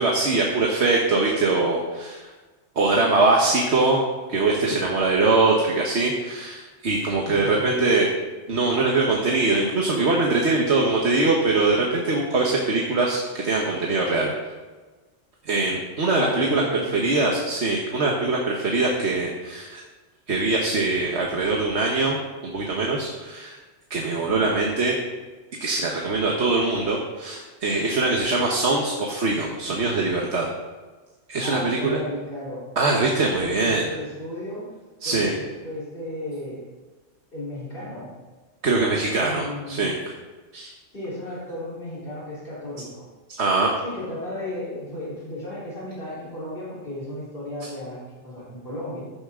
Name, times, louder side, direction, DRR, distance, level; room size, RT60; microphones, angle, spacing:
voice 1, 0.0-2.3 2.7-4.0 4.3-8.1 8.5-14.3 15.4-19.8 20.3-23.6 23.9-25.0 25.6-30.5 31.3-32.0 32.8-33.8 35.0-35.3 38.6-40.0 40.5-40.7 43.3-43.7, right 3 dB, 65° right, -1 dB, 1.6 m, -22 dB
voice 2, 7.2-7.8 16.1-17.1 31.4-33.0 33.4-34.7 35.0-36.7 37.3-38.1 39.2-39.8 40.9-43.1 43.8-49.0, left 1 dB, 50° left, -8 dB, 4.2 m, -34 dB
15.0 x 10.0 x 3.8 m, 1.3 s
omnidirectional pair, 1.2 m